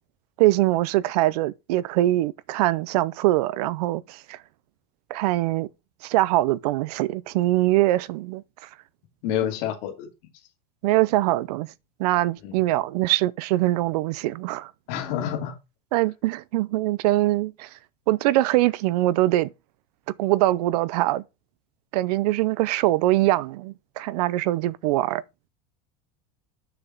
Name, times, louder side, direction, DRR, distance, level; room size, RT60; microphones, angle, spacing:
voice 1, 0.4-4.4 5.1-5.7 6.0-8.7 10.8-11.7 12.0-14.7 15.9-17.7 18.1-19.5 20.2-21.2 21.9-25.2, right 16 dB, 70° right, 0.5 m, -23 dB
voice 2, 9.2-10.1 12.4-12.5 14.9-15.5, left 10 dB, 50° left, 2.4 m, -28 dB
7.0 x 6.8 x 3.9 m
supercardioid pair, 175°, 21 cm